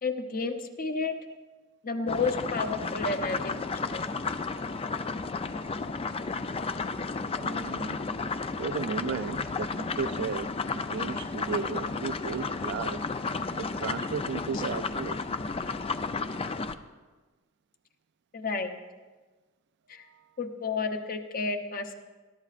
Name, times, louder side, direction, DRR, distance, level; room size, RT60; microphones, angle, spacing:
voice 1, 0.0-1.1 1.8-3.5 3.9-4.0 18.3-18.7 19.9-20.0 20.4-21.9, left 4 dB, 45° left, 0.9 m, -31 dB
sound 1, 2.1-16.8, left 4 dB, 30° left, 0.4 m, -33 dB
voice 2, 7.4-8.0 8.6-13.1 13.6-15.2, right 5 dB, 55° right, 0.4 m, -35 dB
21.5 x 11.5 x 2.5 m
head